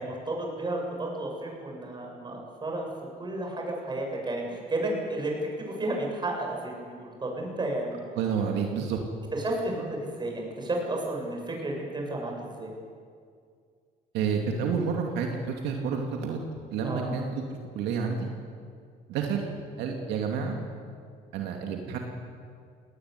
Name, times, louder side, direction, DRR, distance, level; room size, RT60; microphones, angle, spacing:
voice 1, 0.0-2.9 3.2-8.0 9.3-12.7 16.8-17.1, right 1 dB, 25° right, 0 dB, 7.6 m, -32 dB
voice 2, 8.2-9.0 14.1-16.4 16.7-17.4 17.8-18.3 19.1-19.5 19.8-20.6 21.3-22.0, right 6 dB, 85° right, 2 dB, 2.6 m, -29 dB
19.0 x 18.5 x 9.9 m, 2.2 s
cardioid pair, 110°, 17 cm